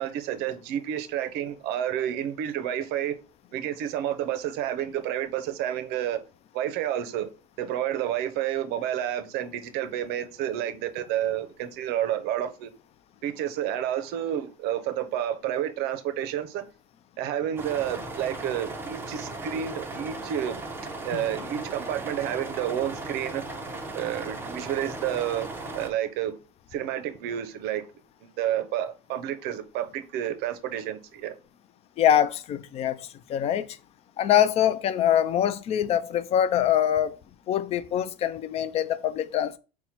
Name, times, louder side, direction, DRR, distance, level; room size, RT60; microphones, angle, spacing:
voice 1, 0.0-3.1 3.5-6.2 6.5-7.3 7.6-12.7 13.2-16.7 17.2-20.6 21.0-23.4 23.9-26.3 26.7-27.8 28.2-31.3, right 11 dB, 55° right, 0.6 m, -30 dB
sound 1, 17.6-25.9, right 2 dB, 10° right, 0.6 m, -37 dB
voice 2, 32.0-33.8 34.2-37.2 37.5-39.6, left 10 dB, 30° left, 0.4 m, -24 dB
4.1 x 2.2 x 4.3 m
supercardioid pair, 135°, 20 cm